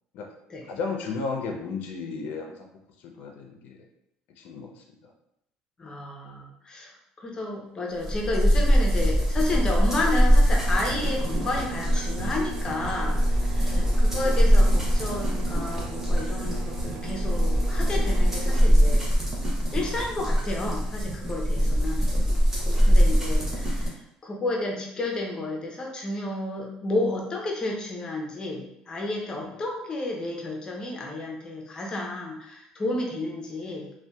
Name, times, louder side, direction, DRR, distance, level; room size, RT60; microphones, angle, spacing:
voice 1, 0.7-2.7 3.0-3.8 4.4-5.1 13.7-14.0 21.5-22.0 22.8-23.1 29.3-29.6, left 4 dB, 75° left, 2 dB, 0.4 m, -35 dB
voice 2, 5.8-6.9 7.2-19.1 19.7-22.1 22.9-23.9 24.2-33.9, left 2 dB, 30° left, -1 dB, 0.6 m, -31 dB
sound 1, 8.0-23.9, equal, 15° right, 0.7 m, -23 dB
Run, 9.6-17.6, left 1 dB, 55° right, 1.1 m, -41 dB
sound 2, 10.6-18.7, right 7 dB, 75° right, 0.3 m, -39 dB
2.6 x 2.1 x 2.2 m, 0.79 s
cardioid pair, 110°, 3 cm